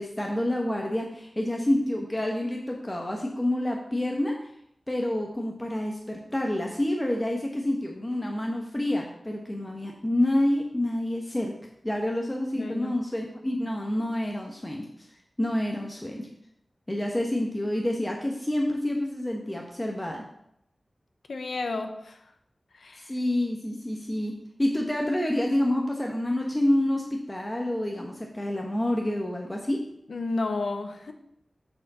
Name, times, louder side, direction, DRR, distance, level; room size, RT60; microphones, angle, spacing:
voice 1, 0.0-4.4 4.9-11.5 11.8-14.9 15.4-16.3 16.9-20.3 23.0-29.8, left 1 dB, 15° left, 0 dB, 1.1 m, -28 dB
voice 2, 12.5-12.9 21.3-22.3 22.7-23.1 30.1-31.1, left 3 dB, 85° left, 7 dB, 0.9 m, -32 dB
6.8 x 5.0 x 6.7 m, 0.74 s
wide cardioid pair, 95°, 0 cm